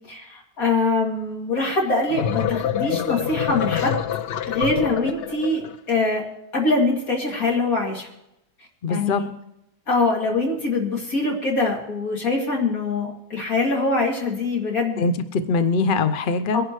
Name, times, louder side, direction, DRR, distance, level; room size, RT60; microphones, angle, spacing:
voice 1, 0.1-4.0 4.5-6.3 6.5-8.1 8.9-9.3 9.9-15.0 16.5-16.6, left 3 dB, 60° left, 0 dB, 3.2 m, -23 dB
sound 1, 1.9-5.8, left 9 dB, 80° left, 0.5 m, -26 dB
voice 2, 8.8-9.2 15.0-16.6, left 4 dB, 45° left, 10 dB, 0.7 m, -22 dB
23.5 x 11.0 x 3.2 m, 0.85 s
omnidirectional pair, 1.7 m